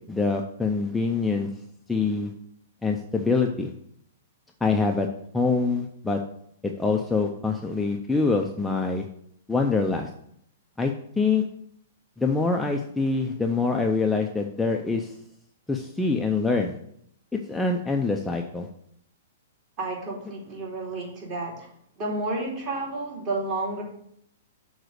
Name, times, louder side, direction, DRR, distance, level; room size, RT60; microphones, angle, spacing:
voice 1, 0.1-1.5 1.9-2.3 2.8-3.7 4.6-5.1 5.3-6.2 6.6-9.1 9.5-10.1 10.8-11.4 12.2-15.1 15.7-16.8 17.3-18.7, left 4 dB, 5° left, 1 dB, 0.5 m, -25 dB
voice 2, 19.8-21.7 22.0-23.8, right 2 dB, 35° right, -4 dB, 3.3 m, -31 dB
6.6 x 4.0 x 6.4 m, 0.70 s
hypercardioid pair, 145°, 0 cm